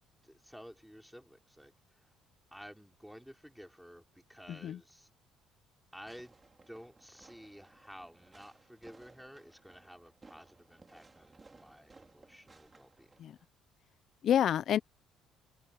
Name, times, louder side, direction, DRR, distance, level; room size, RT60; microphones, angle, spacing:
voice 1, 0.2-2.1 2.5-5.1 5.9-6.4 6.7-13.1, equal, ahead, 5.3 m, -53 dB
voice 2, 4.5-4.8 13.2-13.4 14.2-14.8, left 10 dB, 60° left, 0.7 m, -28 dB
Fireworks, 6.0-13.5, right 3 dB, 25° right, 4.6 m, -61 dB
hypercardioid pair, 55°, 0 cm